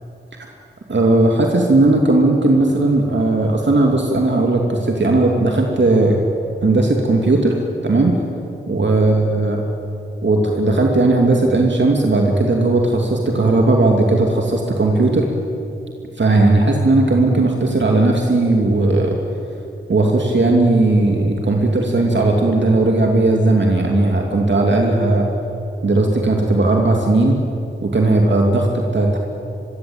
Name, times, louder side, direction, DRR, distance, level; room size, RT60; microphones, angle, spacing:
voice 1, 0.9-6.2 6.6-7.6 7.8-8.2 8.7-9.6 10.2-15.3 16.2-19.2 19.9-25.3 25.8-27.4 27.8-29.2, right 2 dB, 60° right, 1 dB, 2.7 m, -16 dB
26.0 x 23.0 x 8.8 m, 2.8 s
wide cardioid pair, 95°, 21 cm